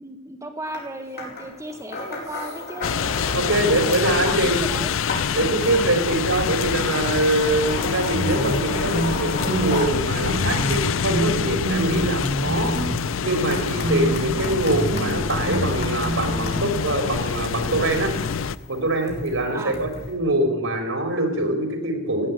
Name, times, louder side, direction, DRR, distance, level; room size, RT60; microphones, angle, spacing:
voice 1, 0.0-2.9 3.5-4.9 14.4-14.6 19.5-19.8, right 1 dB, 15° right, 4 dB, 1.5 m, -35 dB
sound 1, 0.7-0.9 1.2-4.2 4.5-16.6 17.3-20.1, left 2 dB, 50° left, 4.6 m, -35 dB
sound 2, 2.8-18.6, left 6 dB, 80° left, 0.5 m, -26 dB
voice 2, 3.3-4.7 5.3-12.9 13.2-18.1 18.7-22.3, right 1 dB, 85° right, 5 dB, 3.7 m, -24 dB
sound 3, 8.1-10.0 10.2-10.8 11.1-13.0 13.3-13.5 13.8-16.8, right 1 dB, 30° right, 2.5 m, -27 dB
15.5 x 9.3 x 9.1 m, 1.1 s
head